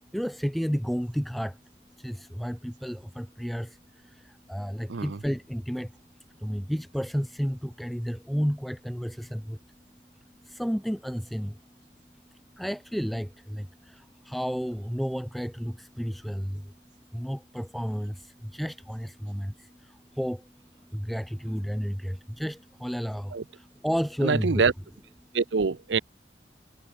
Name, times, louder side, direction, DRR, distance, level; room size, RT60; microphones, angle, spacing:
voice 1, 0.1-1.6 2.0-5.9 6.4-9.6 10.4-11.6 12.6-16.7 17.1-20.5 20.9-24.6, equal, ahead, 0.6 m, -32 dB
voice 2, 24.2-24.7 25.3-26.0, right 5 dB, 90° right, 0.6 m, -25 dB
head